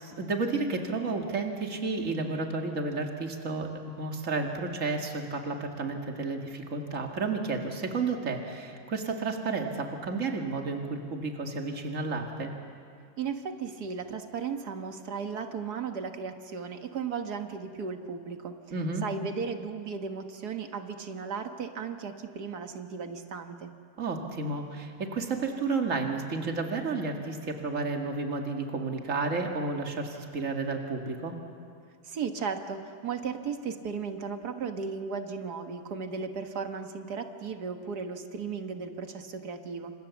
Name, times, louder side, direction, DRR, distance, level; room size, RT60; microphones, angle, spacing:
voice 1, 0.0-3.7 4.0-12.5 18.7-19.0 24.0-31.4, right 3 dB, 55° right, 2 dB, 2.4 m, -31 dB
voice 2, 13.2-18.6 19.0-23.7 32.0-39.9, right 5 dB, 80° right, 6 dB, 1.9 m, -35 dB
29.5 x 26.5 x 7.2 m, 2.3 s
omnidirectional pair, 1.7 m